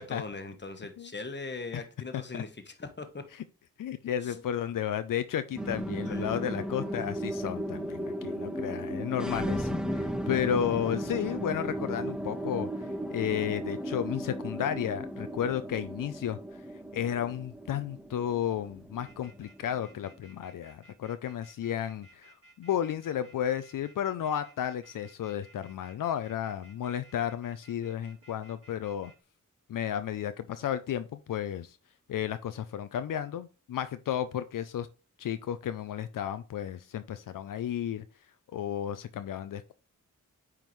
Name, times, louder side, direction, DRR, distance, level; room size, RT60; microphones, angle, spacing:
voice 1, 0.0-3.2 4.2-4.4 6.1-6.4 6.9-7.0, left 3 dB, 35° left, 1.1 m, -40 dB
voice 2, 3.8-16.4 16.9-29.1 29.7-31.8 32.1-34.9 35.2-38.0 38.5-39.7, left 10 dB, 85° left, 0.5 m, -33 dB
sound 1, 5.6-20.2, right 1 dB, ahead, 0.6 m, -35 dB
sound 2, 19.0-29.1, right 2 dB, 45° right, 3.0 m, -57 dB
9.1 x 3.7 x 3.1 m
wide cardioid pair, 80°, 32 cm